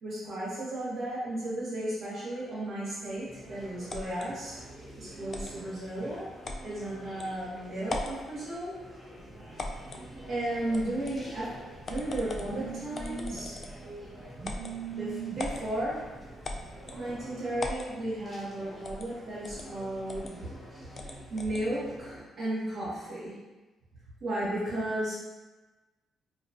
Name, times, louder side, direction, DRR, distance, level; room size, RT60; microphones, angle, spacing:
voice 1, 0.0-4.6 4.9-6.3 6.6-8.7 10.3-11.5 11.9-13.6 14.9-16.0 16.9-20.4 21.3-23.3 24.2-25.1, right 1 dB, 65° right, -11 dB, 1.0 m, -34 dB
sound 1, 2.4-22.2, equal, 5° right, 0.7 m, -48 dB
sound 2, 3.9-4.3 5.3-5.6 6.4-6.7 7.2-7.3 7.8-8.2 9.6-10.0 10.7-11.2 11.8-12.5 12.9-13.8 14.4-14.7 15.4-15.6 16.4-17.0 17.6-17.9 18.8-19.1 19.4-19.7 20.1-20.3 20.9-21.6, left 2 dB, 40° left, 0.3 m, -38 dB
Telephone, 9.2-17.2, right 5 dB, 40° right, 0.4 m, -44 dB
2.5 x 2.2 x 2.7 m, 1.2 s
cardioid pair, 90°, 0 cm